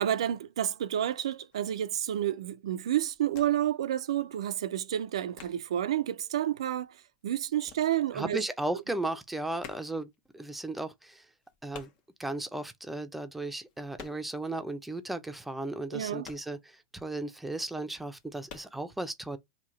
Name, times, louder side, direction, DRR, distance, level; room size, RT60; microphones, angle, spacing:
voice 1, 0.0-7.0 7.2-8.4 15.9-16.3, right 11 dB, 85° right, 0.4 m, -30 dB
sound 1, 1.5-1.8 2.3-2.6 2.8-3.8 4.1-6.0 6.3-8.5 8.8-14.5 14.8-14.9 15.3-17.2 17.6-17.7 18.1-18.8, left 6 dB, 45° left, 0.9 m, -51 dB
voice 2, 8.1-11.2 11.6-11.9 12.2-19.4, right 2 dB, 5° right, 0.6 m, -35 dB
3.0 x 2.8 x 3.8 m
hypercardioid pair, 120°, 3 cm